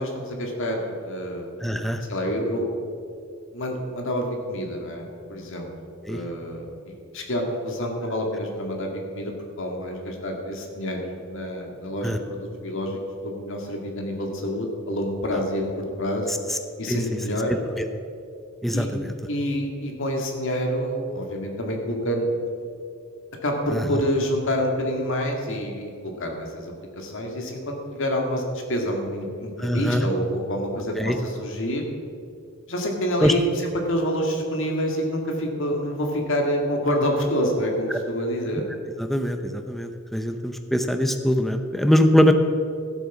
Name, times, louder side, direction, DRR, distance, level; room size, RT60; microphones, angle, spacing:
voice 1, 0.0-1.5 2.1-2.7 3.5-5.7 6.1-16.3 16.8-17.5 18.7-18.9 19.3-22.4 23.4-28.4 28.7-31.9 32.7-38.6, equal, 60° left, 2 dB, 2.0 m, -27 dB
voice 2, 1.6-2.0 6.1-6.2 12.0-12.2 16.5-16.6 16.9-17.0 17.5-17.9 18.6-19.1 23.7-23.8 29.6-30.0 31.0-31.2 33.2-33.3 39.0-42.3, equal, ahead, 6 dB, 0.6 m, -22 dB
14.0 x 7.9 x 6.1 m, 2.4 s
head